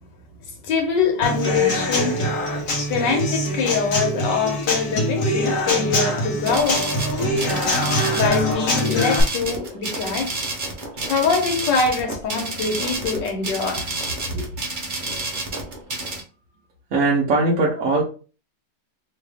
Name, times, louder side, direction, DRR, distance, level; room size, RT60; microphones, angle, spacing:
voice 1, 0.6-2.2 2.9-6.8 8.1-10.3 11.1-13.9 14.3-14.5, left 5 dB, 80° left, 1.7 m, -23 dB
Human voice / Acoustic guitar / Drum, 1.2-9.2, left 1 dB, 55° left, 1.2 m, -23 dB
sound 1, 6.5-16.2, right 2 dB, 40° right, 0.8 m, -30 dB
voice 2, 16.9-18.0, right 3 dB, 60° right, 1.1 m, -19 dB
3.2 x 3.1 x 3.4 m
omnidirectional pair, 1.9 m